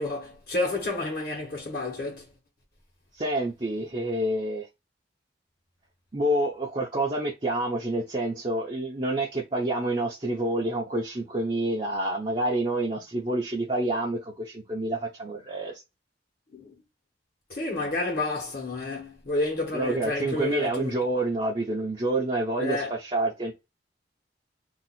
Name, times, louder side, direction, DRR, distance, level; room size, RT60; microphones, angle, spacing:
voice 1, 0.0-2.2 16.5-16.7 17.5-20.9 22.6-22.9, left 2 dB, 55° left, 1.3 m, -30 dB
voice 2, 3.2-4.7 6.1-15.8 19.7-23.5, right 1 dB, 30° right, 0.6 m, -28 dB
2.8 x 2.3 x 4.1 m
head